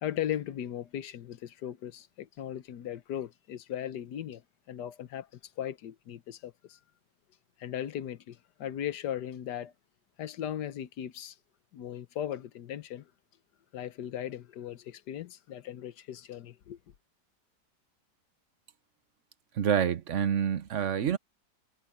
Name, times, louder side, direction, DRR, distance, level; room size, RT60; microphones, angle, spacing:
voice 1, 0.0-4.4 4.7-6.8 7.6-9.7 10.2-11.4 11.7-13.1 13.7-16.8, left 10 dB, 80° left, 1.5 m, -37 dB
voice 2, 19.6-21.2, right 8 dB, 55° right, 1.1 m, -27 dB
omnidirectional pair, 1.8 m